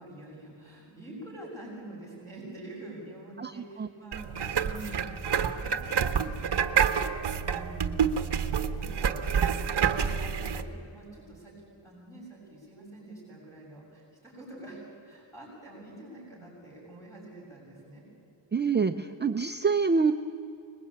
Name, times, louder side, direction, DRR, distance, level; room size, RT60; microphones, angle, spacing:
voice 1, 0.0-5.1 5.4-9.3 9.7-11.5 11.8-18.0, right 2 dB, 5° left, -4 dB, 7.0 m, -46 dB
sound 1, 4.1-10.6, right 7 dB, 55° right, 1.1 m, -28 dB
voice 2, 18.5-20.1, right 5 dB, 25° right, 7 dB, 0.5 m, -25 dB
25.5 x 21.0 x 8.6 m, 2.8 s
wide cardioid pair, 175°, 48 cm